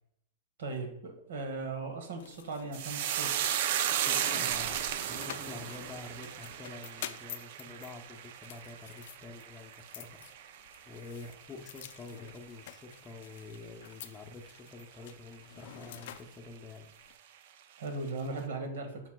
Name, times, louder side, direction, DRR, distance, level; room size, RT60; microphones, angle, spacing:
voice 1, 0.6-3.4 17.8-19.0, right 3 dB, 80° right, 4 dB, 1.5 m, -38 dB
sound 1, 2.2-17.1, left 12 dB, 65° left, 0.4 m, -49 dB
sound 2, 2.7-11.3 11.6-12.3 12.6-12.8, right 10 dB, 60° right, 0.5 m, -35 dB
voice 2, 4.0-10.2 10.8-16.9, left 3 dB, 15° left, 4 dB, 0.7 m, -47 dB
7.3 x 5.8 x 2.3 m, 0.76 s
hypercardioid pair, 140°, 0 cm